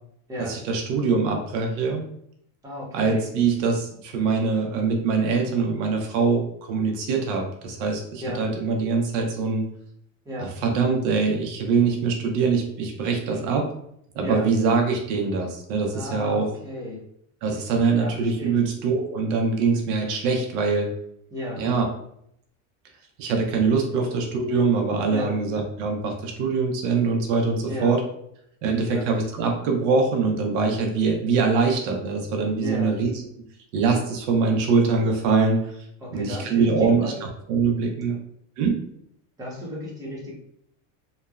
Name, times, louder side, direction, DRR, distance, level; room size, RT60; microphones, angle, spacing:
voice 1, 0.4-2.1 2.9-9.7 10.4-13.7 14.1-16.5 17.4-20.9 21.6-21.9 23.2-28.0 28.6-33.1 33.7-35.8 36.1-38.2 38.6-38.8, right 4 dB, 65° right, 2 dB, 0.6 m, -23 dB
voice 2, 2.6-3.3 8.2-8.4 10.2-10.6 14.2-14.5 15.9-17.0 17.9-18.6 21.3-21.7 23.9-24.0 25.1-25.4 27.7-27.9 28.9-29.0 32.6-32.9 36.0-37.2 38.1-38.2 39.4-40.3, equal, 10° right, -5 dB, 0.7 m, -34 dB
3.0 x 2.1 x 2.3 m, 0.72 s
cardioid pair, 155°, 40 cm